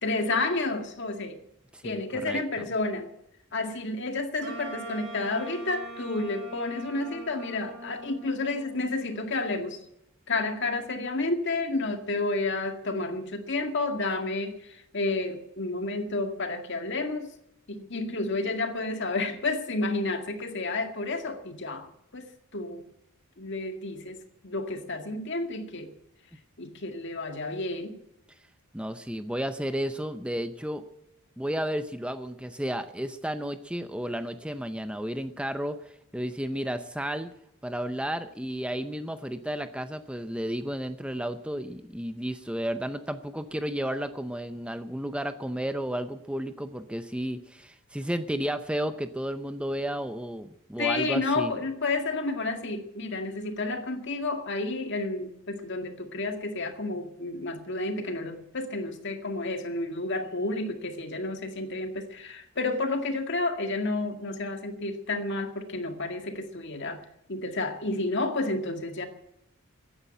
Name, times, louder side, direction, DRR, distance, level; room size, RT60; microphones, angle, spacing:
voice 1, 0.0-1.4 1.8-3.1 3.5-9.8 10.3-17.3 17.7-21.9 22.1-22.8 23.4-24.2 24.4-25.9 26.6-28.0 50.8-69.1, left 2 dB, 55° left, 5 dB, 2.0 m, -31 dB
voice 2, 1.7-2.4 28.7-30.8 31.4-37.3 37.6-51.5, equal, 5° right, 9 dB, 0.7 m, -32 dB
Wind instrument woodwind instrument, 4.4-9.4, right 2 dB, 55° right, 6.4 m, -42 dB
15.5 x 10.0 x 9.0 m, 0.80 s
head